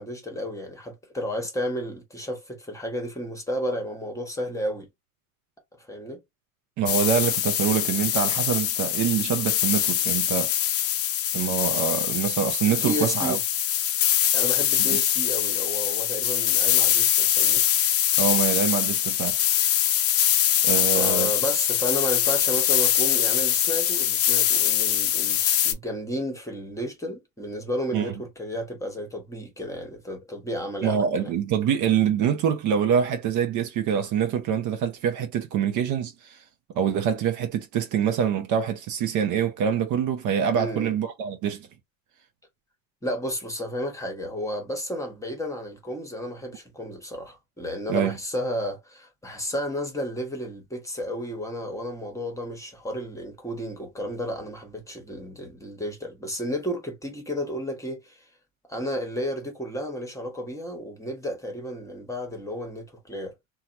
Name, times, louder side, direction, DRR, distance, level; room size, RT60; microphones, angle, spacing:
voice 1, 0.0-4.9 5.9-6.2 12.7-13.4 14.3-17.6 20.9-31.3 40.5-40.9 43.0-58.2 58.7-63.3, equal, 5° left, 1.1 m, -32 dB
voice 2, 6.8-10.5 11.3-13.4 14.8-15.0 18.2-19.4 20.6-21.3 27.9-28.1 30.8-36.4 36.8-41.7 47.9-48.1, right 8 dB, 45° right, 0.7 m, -25 dB
sound 1, 6.9-25.7, left 11 dB, 35° left, 0.5 m, -23 dB
2.8 x 2.3 x 2.5 m
supercardioid pair, 105°, 41 cm